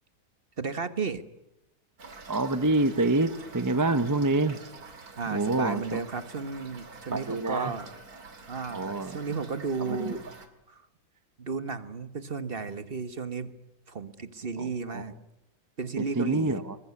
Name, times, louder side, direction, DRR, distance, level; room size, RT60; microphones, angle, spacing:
voice 1, 0.6-1.2 5.2-7.9 8.5-10.2 10.7-10.8 11.4-13.5 13.9-15.1 15.8-16.6, right 4 dB, 35° right, 12 dB, 1.4 m, -33 dB
Toilet flush / Fill (with liquid), 2.0-10.5, right 3 dB, 65° right, 2.8 m, -47 dB
voice 2, 2.3-4.6 5.3-6.0 7.1-7.7 8.7-9.2 9.8-10.2 14.6-15.0 16.0-16.8, right 2 dB, 15° right, 12 dB, 0.7 m, -27 dB
23.5 x 21.0 x 9.7 m, 0.86 s
omnidirectional pair, 1.8 m